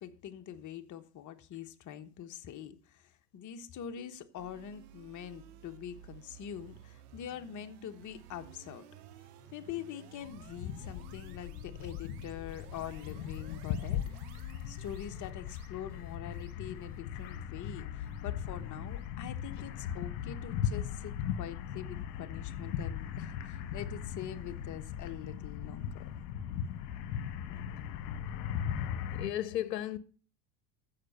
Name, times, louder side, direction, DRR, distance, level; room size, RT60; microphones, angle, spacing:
voice 1, 0.0-8.8 9.5-14.0 14.7-26.0, left 9 dB, 40° left, 1.2 m, -44 dB
sound 1, 4.4-19.5, right 10 dB, 70° right, 1.8 m, -55 dB
sound 2, 10.2-29.3, left 9 dB, 60° left, 1.5 m, -38 dB
voice 2, 29.1-30.0, left 12 dB, 85° left, 0.8 m, -34 dB
14.5 x 5.9 x 5.5 m
hypercardioid pair, 80°, 48 cm